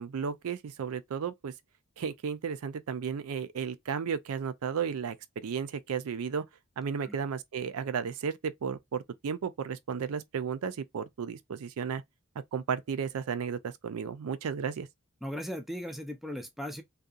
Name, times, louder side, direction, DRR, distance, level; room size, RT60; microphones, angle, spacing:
voice 1, 0.0-1.5 2.0-6.5 6.8-12.0 12.5-14.9, right 6 dB, 75° right, 0.4 m, -34 dB
voice 2, 15.2-16.8, equal, ahead, 0.4 m, -37 dB
2.7 x 2.2 x 2.4 m
head